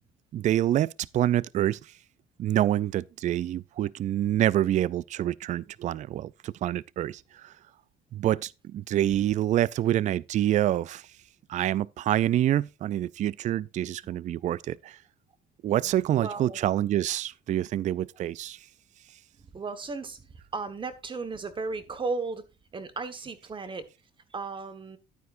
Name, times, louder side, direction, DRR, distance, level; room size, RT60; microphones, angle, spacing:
voice 1, 0.3-1.8 2.4-7.5 8.1-11.0 11.5-15.0 15.6-18.6, right 12 dB, 45° right, 0.4 m, -27 dB
voice 2, 15.8-16.6 19.5-20.2 20.5-22.4 22.7-23.9 24.3-25.0, right 4 dB, 30° right, 1.3 m, -35 dB
10.5 x 9.4 x 2.5 m
cardioid pair, 110°, 17 cm